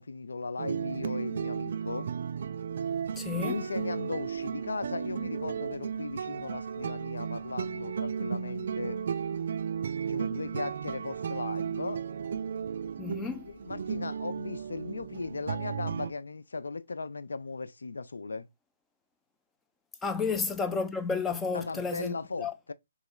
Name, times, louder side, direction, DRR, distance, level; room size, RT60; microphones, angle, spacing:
voice 1, 0.0-2.1 3.4-9.0 10.1-12.0 13.2-13.4 13.6-18.5 21.5-22.7, left 4 dB, 85° left, 0.4 m, -37 dB
sound 1, 0.6-16.1, right 7 dB, 60° right, 0.4 m, -34 dB
voice 2, 3.2-3.6 13.0-13.5 20.0-22.5, left 5 dB, 10° left, 0.5 m, -32 dB
3.1 x 3.0 x 3.7 m
hypercardioid pair, 145°, 0 cm